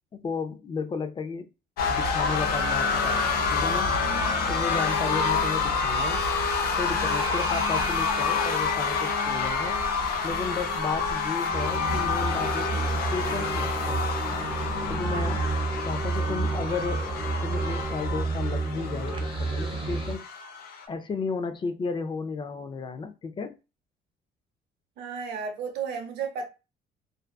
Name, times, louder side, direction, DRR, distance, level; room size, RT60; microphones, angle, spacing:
voice 1, 0.1-1.5 1.9-3.9 4.4-6.2 6.8-9.8 10.2-12.8 13.1-14.1 14.9-15.5 15.8-20.2 20.9-23.5, left 4 dB, 30° left, 0.4 m, -33 dB
sound 1, 1.8-20.8, left 4 dB, 65° left, 0.7 m, -28 dB
sound 2, 11.5-20.1, right 3 dB, 30° right, 0.5 m, -30 dB
voice 2, 25.0-26.5, right 6 dB, 80° right, 0.7 m, -33 dB
2.5 x 2.2 x 2.3 m
cardioid pair, 110°, 17 cm